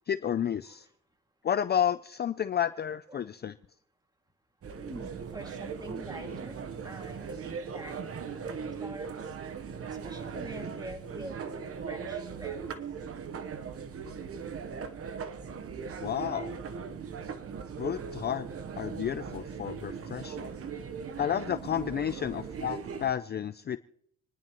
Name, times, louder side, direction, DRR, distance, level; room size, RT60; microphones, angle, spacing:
voice 1, 0.1-0.9 1.4-3.6 16.0-16.6 17.8-18.5 18.8-20.5 21.2-23.8, left 9 dB, 35° left, 13 dB, 0.4 m, -31 dB
sound 1, 4.6-23.1, right 6 dB, 50° right, 1.0 m, -39 dB
voice 2, 4.8-9.4 9.9-12.8 20.1-20.7 22.1-22.2, right 1 dB, 15° right, 3 dB, 2.3 m, -46 dB
28.0 x 10.5 x 3.0 m, 0.73 s
cardioid pair, 90°, 30 cm